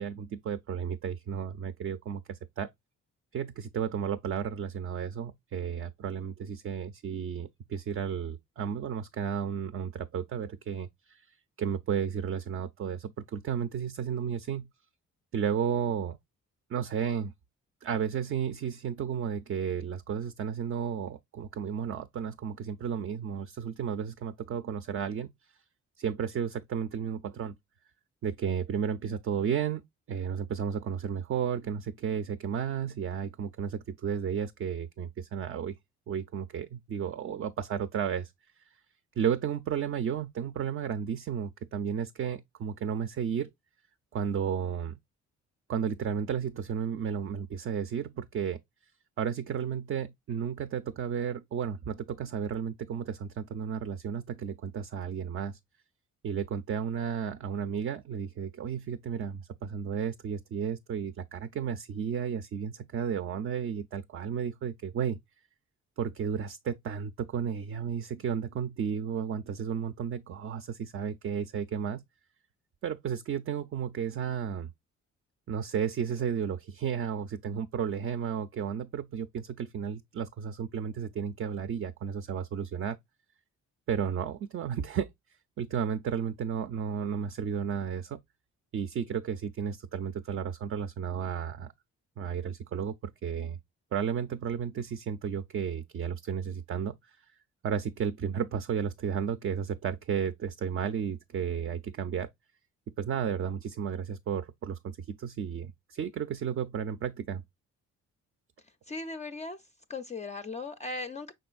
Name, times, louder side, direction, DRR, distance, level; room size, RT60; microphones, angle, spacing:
voice 1, 0.0-2.7 3.3-11.3 11.6-14.7 15.3-16.2 16.7-17.3 17.8-25.3 26.0-27.5 28.2-29.8 30.1-35.8 36.1-38.3 39.2-43.5 44.1-45.0 45.7-48.6 49.2-55.6 56.2-65.2 66.0-72.0 72.8-74.7 75.5-83.0 83.9-85.1 85.6-88.2 88.7-91.7 92.2-93.6 93.9-97.2 97.6-102.3 103.0-107.4, right 7 dB, 45° right, 0.4 m, -33 dB
voice 2, 108.6-111.3, left 3 dB, 25° left, 0.4 m, -38 dB
5.4 x 3.7 x 2.4 m
cardioid pair, 90°, 30 cm